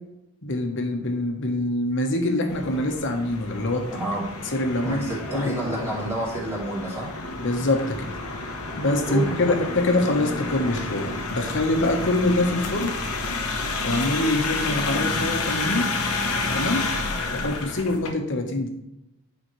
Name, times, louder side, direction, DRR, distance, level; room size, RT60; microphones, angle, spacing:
voice 1, 0.4-4.0 4.5-5.1 5.3-5.6 7.4-8.1 8.8-12.9 13.8-15.9 16.5-16.8 17.3-18.7, left 2 dB, 55° left, 3 dB, 1.2 m, -24 dB
sound 1, 2.5-18.1, left 3 dB, 80° left, 1.0 m, -30 dB
voice 2, 3.9-4.2 4.8-7.1 9.1-9.6, right 1 dB, 10° right, -5 dB, 2.4 m, -29 dB
9.3 x 4.9 x 3.2 m, 0.90 s
head